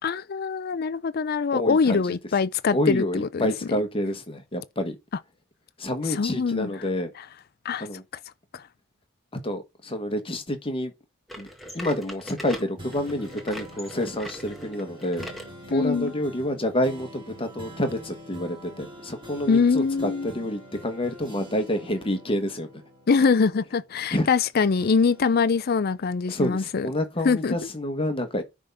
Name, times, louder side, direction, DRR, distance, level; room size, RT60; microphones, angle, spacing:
voice 1, 0.0-3.5 6.1-6.7 7.6-7.9 8.5-8.6 15.7-16.1 19.5-20.3 23.1-26.9 27.2-27.6, left 5 dB, 50° left, 0.5 m, -23 dB
voice 2, 1.5-2.0 2.7-5.0 5.8-7.1 7.8-8.0 9.3-10.9 11.4-11.5 11.7-15.3 15.7-22.7 24.1-24.3 26.3-28.4, left 1 dB, 25° left, 1.4 m, -28 dB
sound 1, 11.3-15.5 16.1-16.2 16.9-17.0 17.9-18.0, equal, ahead, 1.7 m, -40 dB
sound 2, 12.8-24.4 24.8-26.7 27.2-27.3, equal, 25° right, 3.0 m, -45 dB
10.0 x 3.7 x 5.6 m
head